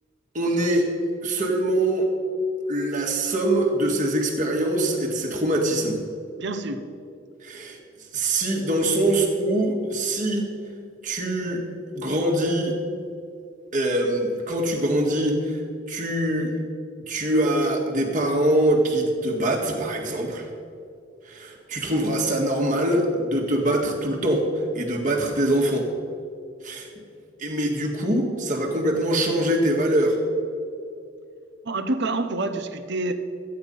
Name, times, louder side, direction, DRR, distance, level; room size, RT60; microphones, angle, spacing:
voice 1, 0.3-0.9 1.2-2.1 2.7-6.0 7.4-7.8 8.1-10.5 11.0-11.6 11.9-12.7 13.7-16.6 17.1-20.5 21.3-24.4 24.7-25.9 26.6-26.9 27.4-30.2, right 1 dB, 45° right, 0 dB, 1.9 m, -23 dB
voice 2, 6.4-6.8 31.6-33.1, right 2 dB, 65° right, 8 dB, 1.0 m, -27 dB
14.0 x 9.3 x 5.5 m, 2.5 s
head